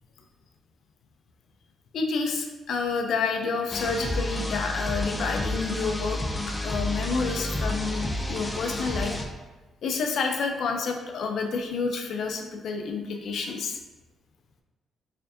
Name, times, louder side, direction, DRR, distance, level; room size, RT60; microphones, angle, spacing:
voice 1, 1.9-6.2 6.6-9.1 9.8-13.8, left 4 dB, 65° left, 3 dB, 0.5 m, -29 dB
sound 1, 3.7-9.3, left 1 dB, 15° left, 0.4 m, -30 dB
4.2 x 2.6 x 2.7 m, 1.2 s
cardioid pair, 90°, 0 cm